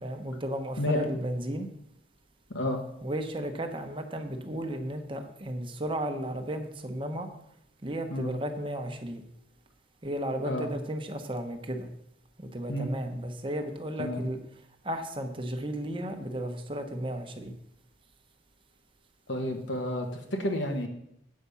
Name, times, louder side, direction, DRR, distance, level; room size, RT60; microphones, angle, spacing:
voice 1, 0.0-1.7 3.0-7.3 7.8-9.2 10.0-11.9 12.4-14.4 14.8-17.5, right 1 dB, 25° right, 5 dB, 0.9 m, -34 dB
voice 2, 2.5-2.8 8.1-8.3 10.4-10.7 12.7-12.9 14.0-14.2 19.3-20.9, left 1 dB, 75° left, 3 dB, 1.2 m, -30 dB
8.5 x 5.1 x 6.9 m, 0.75 s
head